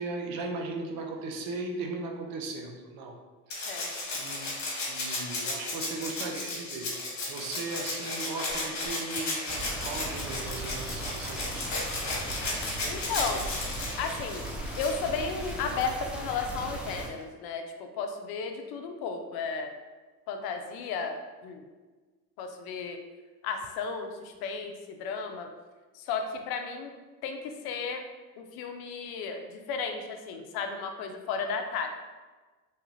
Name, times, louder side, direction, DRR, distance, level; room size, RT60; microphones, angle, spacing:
voice 1, 0.0-3.2 3.5-3.7 4.1-4.5 4.9-7.0 7.3-11.6, right 3 dB, 55° right, 2 dB, 0.7 m, -37 dB
Rattle (instrument), 3.5-15.8 17.2-17.3, left 2 dB, 40° left, 1.3 m, -35 dB
sound 1, 9.5-17.1, right 1 dB, 5° right, 0.4 m, -38 dB
voice 2, 12.9-13.5 14.0-14.5 14.7-19.7 20.3-21.2 21.4-21.6 22.4-23.0 23.4-25.5 25.9-26.9 27.2-28.0 28.4-31.9, left 5 dB, 60° left, 5 dB, 0.5 m, -34 dB
3.2 x 2.4 x 3.0 m, 1.3 s
supercardioid pair, 80°, 43 cm